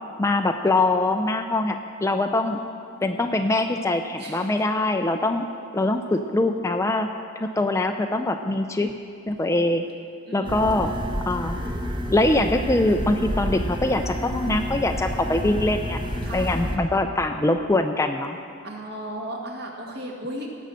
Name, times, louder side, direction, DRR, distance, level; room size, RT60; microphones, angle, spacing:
voice 1, 0.2-2.6 3.0-5.4 5.7-7.1 7.4-8.9 9.3-9.8 10.3-10.9 11.3-11.6 12.1-16.0 16.3-18.4, left 2 dB, 15° left, 6 dB, 0.4 m, -23 dB
voice 2, 2.4-3.3 4.2-4.5 10.3-11.2 16.2-16.5 18.6-20.5, right 1 dB, 50° right, 0 dB, 2.0 m, -36 dB
sound 1, 10.4-16.8, equal, 20° right, 1.0 m, -29 dB
17.0 x 6.3 x 7.7 m, 2.3 s
head